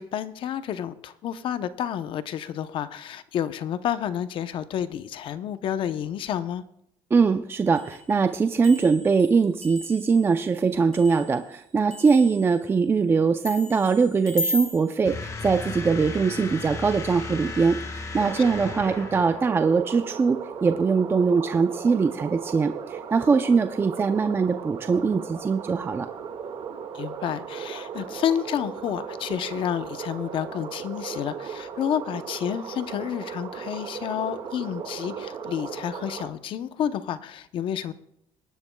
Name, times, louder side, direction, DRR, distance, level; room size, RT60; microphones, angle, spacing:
voice 1, 0.0-6.6 26.9-37.9, left 9 dB, 50° left, 13 dB, 0.7 m, -30 dB
voice 2, 7.1-26.1, right 5 dB, 20° right, 8 dB, 0.5 m, -22 dB
sound 1, 7.8-8.0 8.3-11.6 11.9-12.6 13.4-14.8, equal, 5° left, 3.4 m, -35 dB
sound 2, 15.0-19.7, left 3 dB, 30° left, 1.4 m, -35 dB
sound 3, 18.2-36.3, right 7 dB, 55° right, 1.8 m, -37 dB
21.5 x 10.5 x 2.3 m, 0.75 s
cardioid pair, 125°, 11 cm